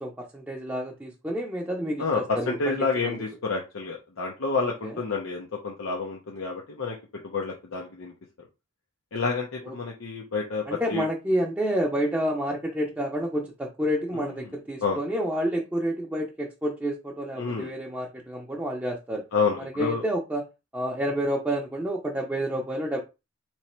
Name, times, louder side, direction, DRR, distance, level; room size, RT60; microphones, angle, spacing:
voice 1, 0.0-3.2 4.6-4.9 9.6-9.7 10.7-19.2 19.6-20.4 20.7-23.0, equal, 10° right, 0.6 m, -29 dB
voice 2, 2.0-7.0 7.2-8.1 9.1-11.0 14.1-14.3 14.8-15.0 17.4-17.7 19.3-20.0, left 4 dB, 80° left, 0.8 m, -29 dB
3.1 x 3.0 x 4.3 m
head